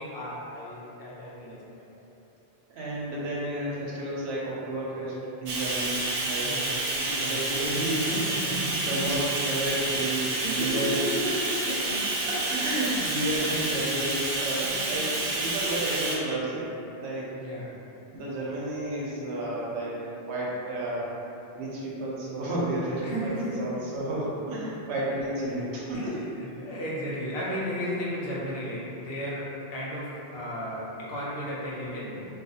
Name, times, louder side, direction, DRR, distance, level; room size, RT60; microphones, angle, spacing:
voice 1, 0.0-1.9 6.4-6.8 7.1-7.5 8.3-9.1 10.3-12.1 13.1-13.2 14.6-15.1 17.4-17.8 23.0-23.6 24.9-25.0 25.4-25.7 25.9-32.3, equal, 65° left, -7 dB, 0.8 m, -34 dB
voice 2, 2.7-6.6 6.9-11.3 11.8-11.9 12.2-16.7 17.0-17.4 18.1-20.0 20.2-21.1 21.5-26.1, right 1 dB, 85° right, -6 dB, 0.9 m, -32 dB
Bathtub (filling or washing), 5.5-16.2, right 2 dB, 60° right, 0.3 m, -29 dB
2.4 x 2.4 x 2.7 m, 2.9 s
omnidirectional pair, 1.1 m